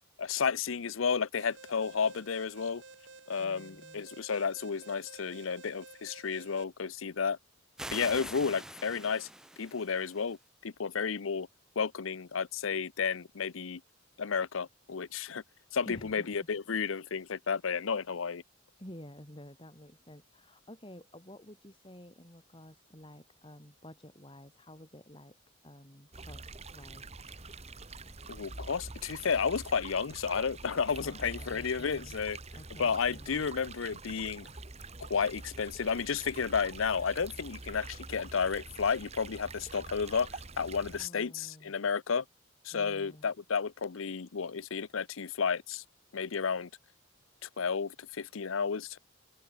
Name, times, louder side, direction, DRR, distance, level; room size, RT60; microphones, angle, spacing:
voice 1, 0.2-2.8 3.3-7.4 7.9-9.3 9.6-10.4 10.6-11.5 11.8-13.8 14.2-15.4 15.7-18.4 28.3-32.4 32.8-34.5 35.1-42.2 42.6-45.8 46.1-46.7 47.4-49.0, left 6 dB, 80° left, 0.7 m, -32 dB
Alarm, 1.4-6.6, right 3 dB, 65° right, 6.7 m, -53 dB
voice 2, 3.4-4.1 15.9-16.3 18.8-25.4 25.6-27.1 31.0-32.2 32.5-33.3 41.0-41.7 42.7-43.3, left 1 dB, 25° left, 5.8 m, -51 dB
sound 1, 7.8-10.4, right 1 dB, 5° right, 0.3 m, -45 dB
sound 2, 26.1-41.1, right 3 dB, 30° right, 1.8 m, -46 dB
head